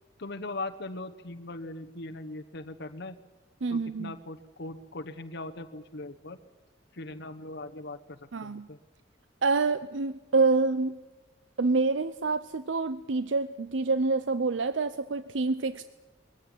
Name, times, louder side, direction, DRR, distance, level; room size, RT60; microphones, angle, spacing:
voice 1, 0.2-3.2 3.7-6.4 6.9-8.8, left 2 dB, 60° left, 7 dB, 1.1 m, -40 dB
voice 2, 3.6-4.1 8.3-8.7 9.4-11.0 11.6-15.9, right 3 dB, 70° right, 13 dB, 0.7 m, -27 dB
21.5 x 15.5 x 9.9 m, 1.2 s
head